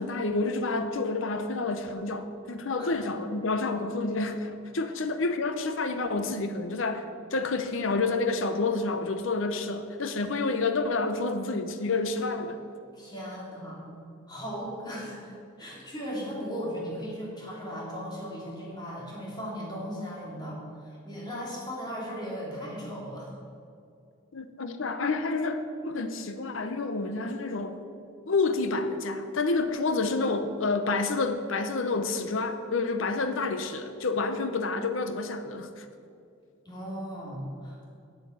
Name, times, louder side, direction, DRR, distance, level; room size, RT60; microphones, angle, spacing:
voice 1, 0.0-12.6 24.3-27.8 28.3-35.8, left 3 dB, 70° left, 8 dB, 0.7 m, -29 dB
voice 2, 12.9-14.0 14.3-15.3 15.6-23.3 36.6-37.8, equal, 20° left, -5 dB, 3.1 m, -37 dB
8.4 x 8.1 x 8.0 m, 2.5 s
head